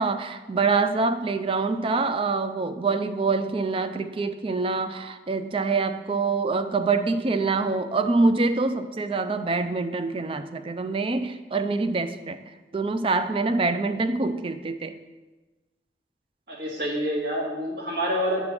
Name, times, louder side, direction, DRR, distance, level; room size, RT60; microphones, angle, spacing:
voice 1, 0.0-12.4 12.7-15.0, right 3 dB, 30° right, 10 dB, 0.4 m, -25 dB
voice 2, 16.5-18.4, equal, 55° right, -3 dB, 1.8 m, -27 dB
8.7 x 3.7 x 6.0 m, 1.2 s
head